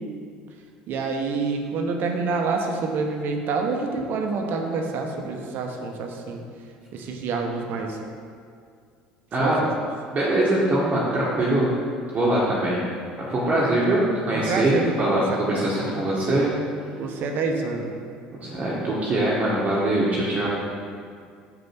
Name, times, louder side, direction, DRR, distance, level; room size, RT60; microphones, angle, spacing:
voice 1, 0.9-6.4 6.9-8.0 9.4-9.7 14.3-16.0 17.0-18.0, right 4 dB, 55° right, 3 dB, 1.0 m, -27 dB
voice 2, 9.3-9.6 10.1-11.7 12.1-12.8 13.2-16.5 18.4-20.5, right 1 dB, 35° right, -6 dB, 1.5 m, -22 dB
5.9 x 5.2 x 5.9 m, 2.2 s
hypercardioid pair, 65°, 4 cm